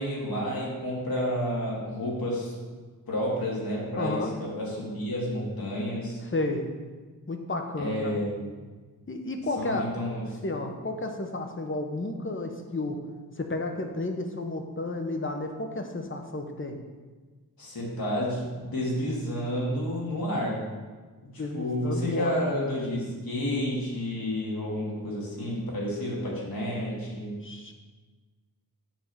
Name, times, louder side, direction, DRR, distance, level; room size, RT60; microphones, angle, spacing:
voice 1, 0.0-2.6 3.1-6.2 7.8-8.5 9.6-10.2 17.6-20.7 21.3-27.4, equal, 70° left, -4 dB, 2.5 m, -30 dB
voice 2, 4.0-4.3 6.3-6.7 7.3-8.2 9.1-9.9 10.4-13.0 13.4-16.8 21.4-22.4 27.4-27.7, left 2 dB, 35° left, 4 dB, 1.1 m, -32 dB
8.9 x 3.7 x 7.0 m, 1.4 s
wide cardioid pair, 75°, 37 cm